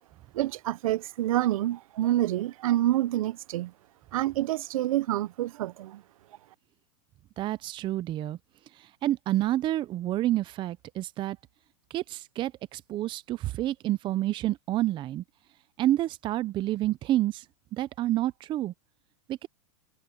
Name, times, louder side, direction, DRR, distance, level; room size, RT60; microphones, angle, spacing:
voice 1, 0.3-3.7 4.1-6.0, right 14 dB, 70° right, 0.8 m, -27 dB
voice 2, 7.4-8.4 9.0-11.4 11.9-15.2 15.8-17.4 17.7-18.7 19.3-19.5, right 14 dB, 25° right, 0.6 m, -28 dB
hypercardioid pair, 135°, 18 cm